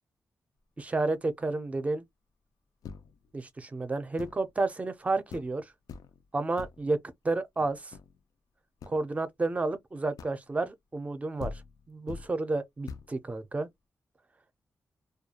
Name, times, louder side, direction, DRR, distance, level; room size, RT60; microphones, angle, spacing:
voice 1, 0.8-2.0 3.3-5.7 6.3-7.0 7.2-7.9 8.9-11.6 11.9-13.7, right 2 dB, 25° right, 0.5 m, -31 dB
sound 1, 2.8-3.3 4.2-4.5 5.0-5.1 5.3-5.6 5.9-6.3 6.6-6.9 7.6-8.2 8.8-9.0 10.2-10.5 11.1-11.2 11.4-12.4 12.9-13.2, left 5 dB, 90° left, 0.3 m, -44 dB
2.3 x 2.2 x 2.8 m
wide cardioid pair, 130°, 6 cm